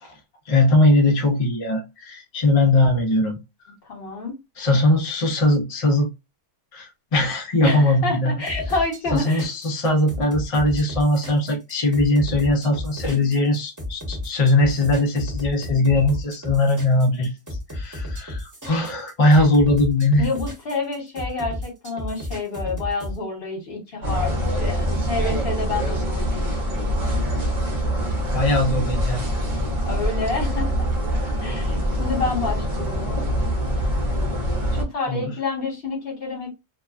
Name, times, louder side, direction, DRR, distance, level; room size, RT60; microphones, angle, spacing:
voice 1, 0.5-3.4 4.6-6.1 6.7-8.3 9.1-17.3 17.7-20.3 28.3-29.4 35.1-35.3, left 2 dB, 60° left, 0.3 m, -20 dB
voice 2, 3.8-4.4 7.6-9.5 20.2-26.7 29.9-30.9 31.4-33.3 34.7-36.5, left 3 dB, 40° left, 1.2 m, -28 dB
sound 1, 8.5-23.2, left 1 dB, 15° right, 0.9 m, -32 dB
sound 2, 24.0-34.8, equal, 45° right, 0.7 m, -24 dB
2.8 x 2.2 x 2.4 m
omnidirectional pair, 1.6 m